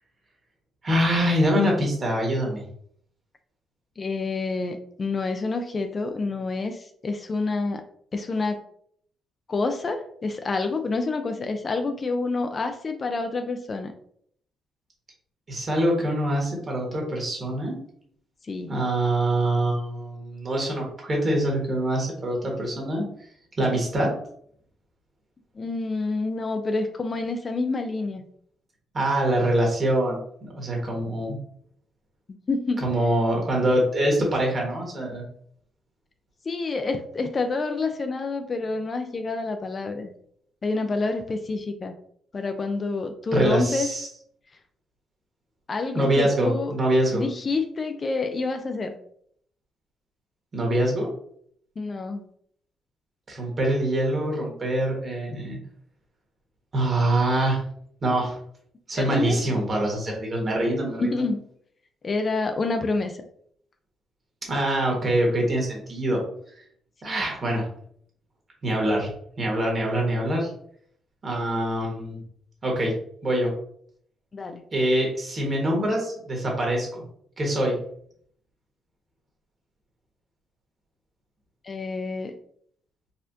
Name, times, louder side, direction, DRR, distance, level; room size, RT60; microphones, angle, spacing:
voice 1, 0.8-2.6 15.5-17.8 18.7-23.0 23.6-24.1 28.9-31.4 32.8-35.2 43.3-44.1 45.9-47.2 50.5-51.1 53.3-55.6 56.7-57.6 58.0-58.4 58.9-61.2 64.5-66.2 67.0-67.7 68.6-69.1 69.4-70.5 71.2-72.2 72.6-72.9 73.2-73.5 74.7-77.1 77.4-77.8, right 1 dB, 40° right, -1 dB, 1.4 m, -24 dB
voice 2, 4.0-7.8 8.1-8.6 9.5-13.9 18.5-18.7 25.6-28.2 32.3-32.9 36.5-40.1 40.6-41.9 42.3-43.9 45.7-46.7 47.1-49.0 51.8-52.2 58.9-59.4 61.0-61.4 62.0-63.3 67.0-67.2 74.3-74.6 81.6-82.4, left 3 dB, 35° left, 7 dB, 0.4 m, -28 dB
4.1 x 2.4 x 2.7 m, 0.64 s
cardioid pair, 90°, 0 cm